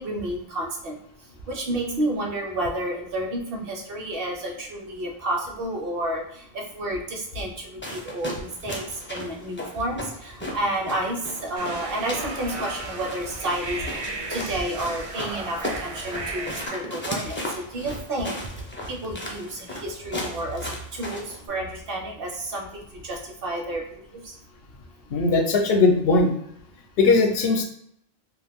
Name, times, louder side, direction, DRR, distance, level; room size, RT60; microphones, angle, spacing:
voice 1, 0.0-24.4 24.8-25.2, right 1 dB, 65° right, 0 dB, 0.9 m, -31 dB
sound 1, 7.8-21.4, left 1 dB, 15° left, 0.4 m, -36 dB
sound 2, 11.6-16.7, right 2 dB, 50° right, 0.4 m, -35 dB
voice 2, 25.1-26.3 27.0-27.6, left 3 dB, 70° left, 3 dB, 0.8 m, -19 dB
2.5 x 2.4 x 3.4 m, 0.73 s
omnidirectional pair, 1.0 m